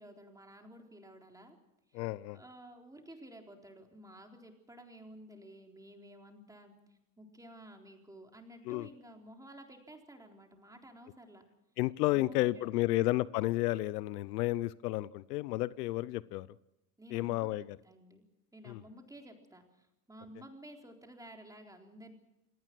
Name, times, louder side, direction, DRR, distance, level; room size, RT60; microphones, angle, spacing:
voice 1, 0.0-1.6 1.9-2.1 2.3-11.4 12.1-13.0 17.0-17.5 17.8-18.2 18.5-22.1, right 1 dB, 5° right, 2 dB, 4.0 m, -53 dB
voice 2, 1.9-2.4 8.7-8.9 11.8-16.5 17.1-17.8 18.7-18.8, left 17 dB, 80° left, 20 dB, 0.8 m, -32 dB
27.5 x 19.0 x 6.1 m, 0.90 s
supercardioid pair, 105°, 47 cm